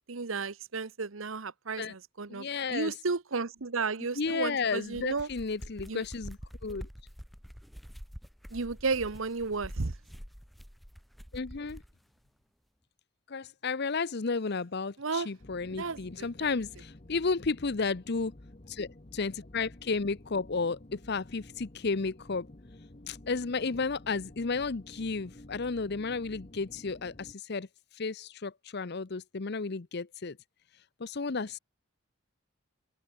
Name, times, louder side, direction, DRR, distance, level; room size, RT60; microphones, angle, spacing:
voice 1, 0.0-5.3 5.9-6.0 8.5-9.9 15.0-15.3 15.8-16.5, right 4 dB, 75° right, 1.0 m, -33 dB
voice 2, 2.3-3.0 4.2-6.9 11.3-11.8 13.3-18.3 18.7-22.5 23.1-30.4 31.0-31.6, left 4 dB, 55° left, 0.7 m, -33 dB
sound 1, 4.7-11.9, equal, ahead, 2.1 m, -46 dB
sound 2, 15.4-27.3, left 1 dB, 35° left, 1.2 m, -52 dB
open air
head